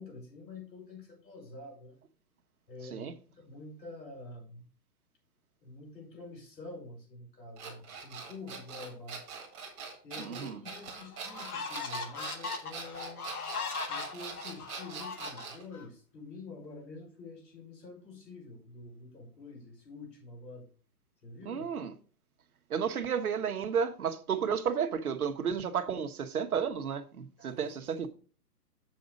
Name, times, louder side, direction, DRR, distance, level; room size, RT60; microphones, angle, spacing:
voice 1, 0.0-2.0 2.7-4.6 5.6-9.3 10.0-13.3 13.9-20.7 21.2-21.7 27.4-27.8, left 3 dB, 80° left, 5.0 m, -47 dB
sound 1, 7.6-15.6, right 5 dB, 15° right, 1.7 m, -43 dB
sound 2, 10.2-10.3 10.9-15.8, left 4 dB, 60° left, 1.6 m, -39 dB
voice 2, 10.2-10.6 21.4-21.9 22.7-28.1, right 7 dB, 60° right, 1.1 m, -32 dB
7.6 x 5.3 x 5.0 m
hypercardioid pair, 175°, 49 cm